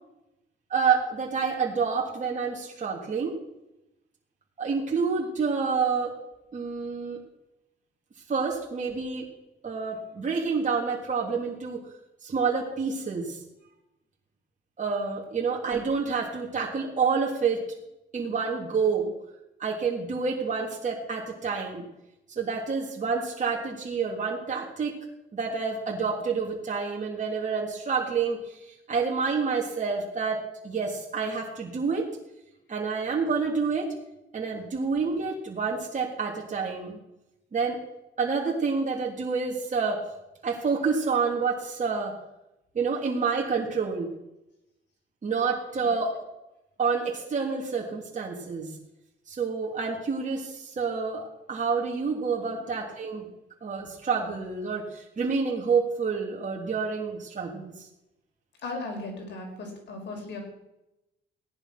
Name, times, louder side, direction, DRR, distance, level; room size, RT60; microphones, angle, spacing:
voice 1, 0.7-3.4 4.6-6.2 6.5-7.2 8.3-9.2 9.6-11.8 12.2-13.4 14.8-17.7 18.1-19.1 19.6-21.8 22.3-24.9 25.3-28.6 28.9-32.1 32.7-33.9 34.3-37.0 37.5-37.8 38.2-40.0 40.4-42.1 42.7-44.1 45.2-46.2 46.8-48.7 49.3-53.3 53.6-57.9, right 5 dB, 40° right, -1 dB, 3.1 m, -28 dB
voice 2, 58.6-60.4, left 2 dB, 60° left, 1 dB, 5.3 m, -37 dB
17.0 x 10.5 x 6.1 m, 0.92 s
cardioid pair, 90°, 20 cm